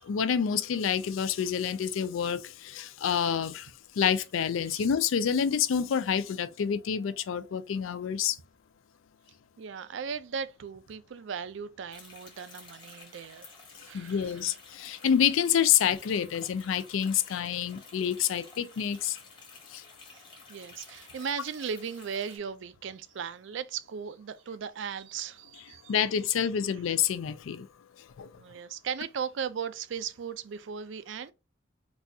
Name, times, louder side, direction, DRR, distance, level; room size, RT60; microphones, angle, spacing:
voice 1, 0.1-3.7 4.0-8.4 13.9-19.2 19.7-19.8 25.9-27.7 28.2-28.3, left 8 dB, 80° left, 0.4 m, -28 dB
voice 2, 9.6-13.5 13.9-14.5 20.1-20.2 20.5-26.4 28.4-31.3, right 7 dB, 65° right, 0.4 m, -37 dB
sound 1, 11.9-22.4, left 4 dB, 25° left, 0.9 m, -52 dB
4.0 x 2.3 x 2.6 m
head